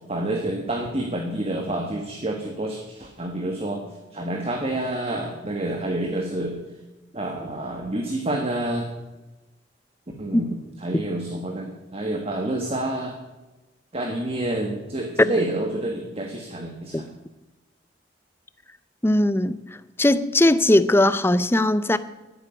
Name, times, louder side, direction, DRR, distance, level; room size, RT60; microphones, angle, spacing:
voice 1, 0.1-3.8 4.1-6.6 7.1-8.9 10.2-13.2 13.9-17.1, right 1 dB, 35° right, 1.5 m, -28 dB
voice 2, 19.0-19.6 20.0-22.0, left 1 dB, 15° left, 0.5 m, -19 dB
11.0 x 9.6 x 8.9 m
head